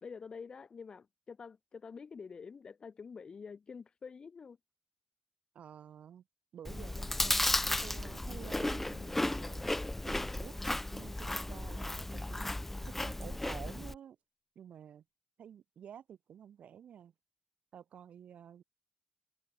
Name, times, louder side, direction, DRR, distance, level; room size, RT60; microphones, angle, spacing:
voice 1, 0.0-4.6, left 5 dB, 40° left, 1.3 m, -47 dB
voice 2, 5.5-6.2 6.5-9.7 10.1-10.6 10.9-12.7 13.0-14.2 14.6-15.0 15.4-17.1 17.7-18.6, right 9 dB, 80° right, 3.9 m, -51 dB
Chewing mastication, 6.6-13.9, left 1 dB, 10° left, 0.3 m, -34 dB
wide cardioid pair, 145°, 2 cm